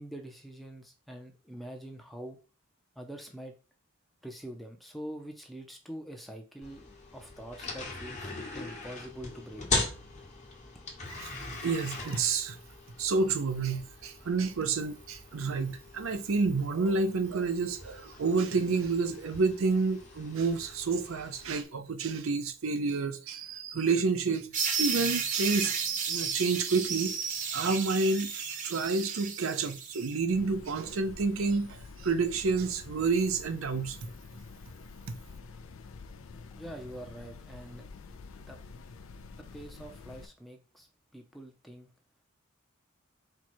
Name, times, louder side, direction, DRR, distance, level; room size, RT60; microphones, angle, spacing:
voice 1, 0.0-2.4 3.0-3.5 4.2-9.9 36.6-37.9 38.4-38.6 39.3-40.9 41.1-41.9, right 1 dB, ahead, 0.6 m, -45 dB
sound 1, 6.6-21.6, left 3 dB, 35° left, 1.2 m, -40 dB
voice 2, 11.6-12.6 13.0-27.1 27.5-34.0 35.1-35.2, right 4 dB, 75° right, 0.5 m, -29 dB
sound 2, 24.5-30.1, right 6 dB, 40° right, 0.6 m, -33 dB
sound 3, 30.3-40.3, left 4 dB, 75° left, 0.5 m, -48 dB
4.5 x 2.3 x 4.3 m
head